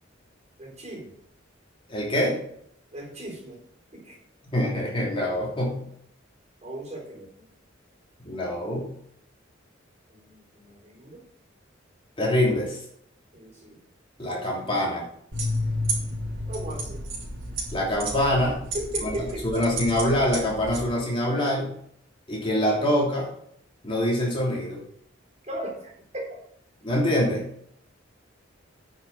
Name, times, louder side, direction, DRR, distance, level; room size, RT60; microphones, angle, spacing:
voice 1, 0.6-1.1 2.9-3.6 3.9-4.2 6.6-7.3 10.1-11.2 13.3-13.8 16.5-17.0 18.7-19.7 25.4-26.3, right 1 dB, 35° right, -1 dB, 3.9 m, -37 dB
voice 2, 1.9-2.4 4.5-5.8 8.2-8.9 12.2-12.8 14.2-15.0 17.7-18.6 19.0-19.1 19.4-21.7 22.3-23.3 23.8-24.8 26.8-27.4, left 1 dB, 30° left, -3 dB, 3.1 m, -24 dB
sound 1, 15.3-20.8, equal, 80° right, 4.2 m, -31 dB
9.8 x 6.5 x 6.1 m, 0.69 s
head